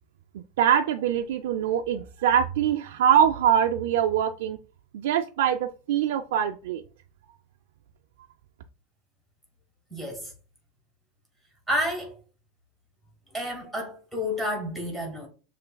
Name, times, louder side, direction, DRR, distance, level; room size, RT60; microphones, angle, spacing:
voice 1, 0.3-4.6 4.9-6.8, right 9 dB, 75° right, 0.4 m, -23 dB
voice 2, 9.9-10.3 11.7-12.1 13.3-15.3, equal, ahead, 1.6 m, -30 dB
6.8 x 3.1 x 2.2 m
supercardioid pair, 170°, 0 cm